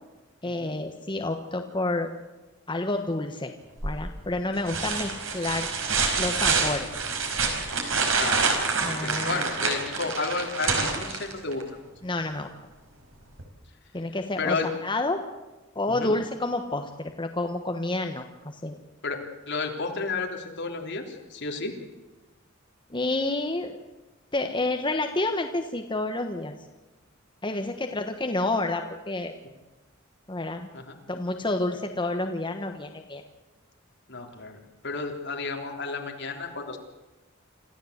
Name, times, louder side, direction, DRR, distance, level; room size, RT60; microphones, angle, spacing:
voice 1, 0.4-2.1 2.7-3.5 3.8-5.7 6.2-7.0 8.8-9.4 12.0-12.5 13.9-15.2 15.7-18.8 22.9-23.7 24.3-26.6 27.4-29.3 30.3-30.7 31.1-33.2, left 2 dB, 25° left, 5 dB, 1.3 m, -29 dB
sound 1, 3.8-4.2 4.7-11.6 13.4-13.5, right 4 dB, 80° right, 4.8 m, -27 dB
voice 2, 9.0-11.6 14.4-14.7 15.9-16.1 19.0-19.2 19.5-21.7 30.7-31.0 34.1-36.8, left 4 dB, 60° left, 2 dB, 3.5 m, -32 dB
27.0 x 14.5 x 8.1 m, 1.1 s
head